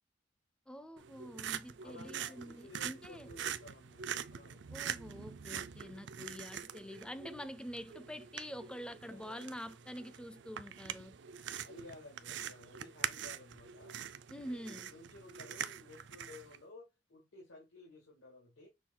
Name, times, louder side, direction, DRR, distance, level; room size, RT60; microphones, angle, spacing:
voice 1, 0.7-3.3 4.7-11.2 14.3-14.9, equal, 5° left, 0.4 m, -46 dB
sound 1, 1.0-16.6, right 8 dB, 70° right, 0.4 m, -44 dB
voice 2, 1.8-4.1 4.3-4.7 9.0-9.7 11.6-14.0 14.4-18.7, left 2 dB, 90° left, 1.7 m, -55 dB
6.1 x 2.3 x 3.7 m
head